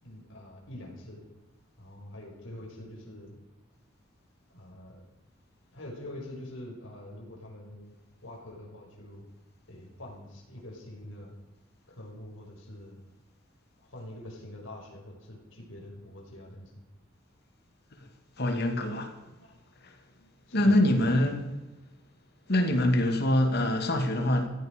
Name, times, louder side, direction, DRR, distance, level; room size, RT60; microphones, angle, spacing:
voice 1, 0.0-1.2 1.8-3.4 4.5-5.0 5.7-7.9 8.2-9.3 9.7-11.4 11.9-13.0 13.8-16.6 19.2-19.6 20.1-21.0 21.4-21.5, left 1 dB, 80° left, 5.2 m, -45 dB
voice 2, 18.4-19.1 19.8-19.9 20.5-21.4 22.5-24.5, left 1 dB, 55° left, 2.3 m, -24 dB
16.0 x 15.0 x 5.2 m
head